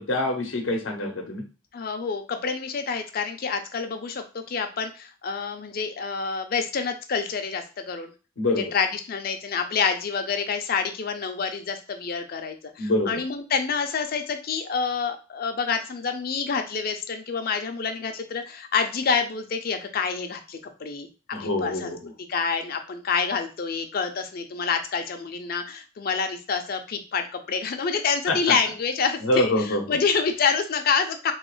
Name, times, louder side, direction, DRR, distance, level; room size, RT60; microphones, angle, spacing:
voice 1, 0.0-1.4 8.4-8.7 12.8-13.2 21.3-22.1 28.3-28.5 29.2-30.0, left 2 dB, 85° left, 2 dB, 0.7 m, -25 dB
voice 2, 1.7-8.1 8.7-21.1 21.4-21.9 22.3-31.3, left 5 dB, 50° left, 6 dB, 0.5 m, -27 dB
3.1 x 2.3 x 3.1 m, 0.33 s
head